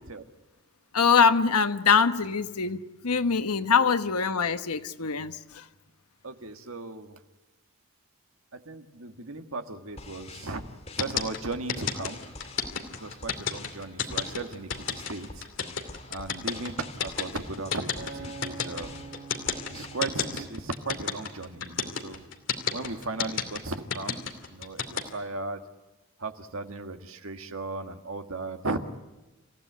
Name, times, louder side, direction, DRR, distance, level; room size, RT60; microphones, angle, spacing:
voice 1, 0.9-5.6, left 5 dB, 90° left, 1.2 m, -23 dB
voice 2, 6.2-7.2 8.5-10.6 11.0-12.3 12.9-15.5 16.1-19.1 19.7-22.2 22.7-24.2 24.5-25.6 26.2-28.8, right 3 dB, 70° right, 1.8 m, -36 dB
sound 1, 9.9-20.0, left 2 dB, 30° left, 2.2 m, -46 dB
sound 2, 11.0-25.0, left 7 dB, 55° left, 2.6 m, -30 dB
Acoustic guitar, 18.0-22.3 22.9-23.2, right 4 dB, 90° right, 4.1 m, -46 dB
28.5 x 16.0 x 9.4 m
head